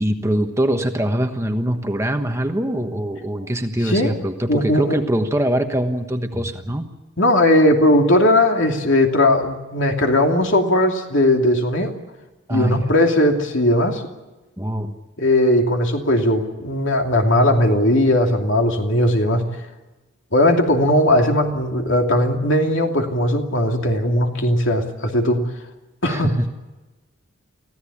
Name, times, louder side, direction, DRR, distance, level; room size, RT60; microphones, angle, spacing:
voice 1, 0.0-6.9 12.5-12.9 14.6-14.9 26.0-26.5, right 1 dB, 15° right, 5 dB, 1.2 m, -23 dB
voice 2, 4.5-5.0 6.3-6.4 7.2-11.9 12.5-14.0 15.2-19.4 20.3-25.5 26.0-26.3, left 1 dB, 65° left, 3 dB, 2.8 m, -18 dB
24.5 x 15.5 x 8.6 m, 1.1 s
head